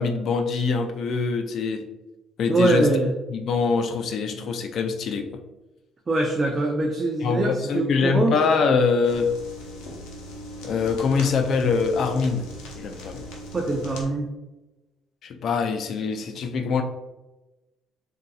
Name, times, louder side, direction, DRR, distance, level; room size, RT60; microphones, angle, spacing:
voice 1, 0.0-1.8 2.4-2.9 3.3-5.3 7.2-9.3 10.6-12.4 12.8-13.2 15.2-16.8, left 5 dB, 60° left, 6 dB, 0.4 m, -24 dB
voice 2, 2.5-3.1 6.1-8.4 13.5-14.3, right 2 dB, 30° right, 1 dB, 0.5 m, -23 dB
sound 1, 9.0-14.1, equal, 90° left, 0.7 m, -39 dB
3.8 x 2.6 x 2.3 m, 1.0 s
supercardioid pair, 80°, 0 cm